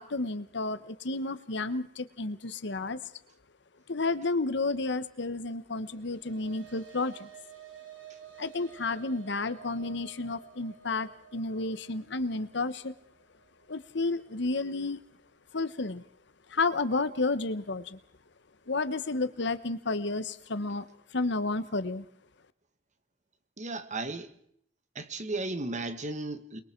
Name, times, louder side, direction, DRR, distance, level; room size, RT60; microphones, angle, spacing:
voice 1, 0.0-3.0 3.9-7.3 8.4-12.9 13.7-15.0 15.5-16.0 16.5-18.0 18.7-20.9 21.1-22.0, left 3 dB, 65° left, 1.1 m, -31 dB
sound 1, 5.7-14.3, right 8 dB, 75° right, 3.5 m, -52 dB
voice 2, 23.6-24.3 24.9-26.6, right 2 dB, 40° right, 1.6 m, -35 dB
29.0 x 22.0 x 4.5 m
head